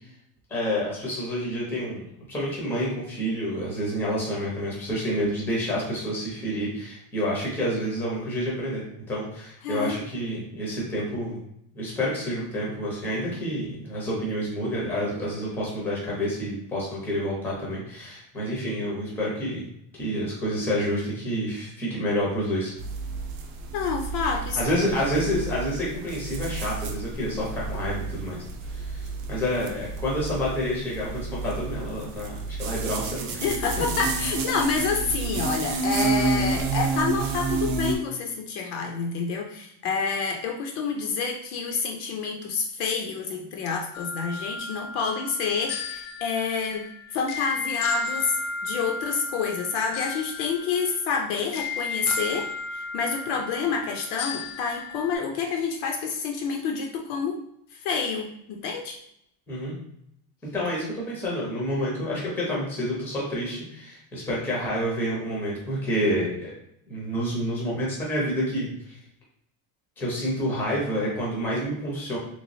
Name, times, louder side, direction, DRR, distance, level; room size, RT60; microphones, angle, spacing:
voice 1, 0.5-2.0 2.3-11.4 11.7-19.7 20.0-22.7 24.2-24.3 24.5-33.4 59.5-59.8 60.5-66.5 66.9-69.0 70.0-72.2, equal, 5° left, -5 dB, 0.6 m, -28 dB
voice 2, 9.6-10.0 23.7-24.9 33.4-48.4 48.6-57.4 57.7-59.0, left 5 dB, 55° left, 2 dB, 0.5 m, -28 dB
sound 1, 22.8-38.0, right 4 dB, 65° right, 0.7 m, -30 dB
sound 2, 43.9-55.1, left 4 dB, 85° left, 0.8 m, -34 dB
3.2 x 3.1 x 2.5 m, 0.74 s
cardioid pair, 180°, 44 cm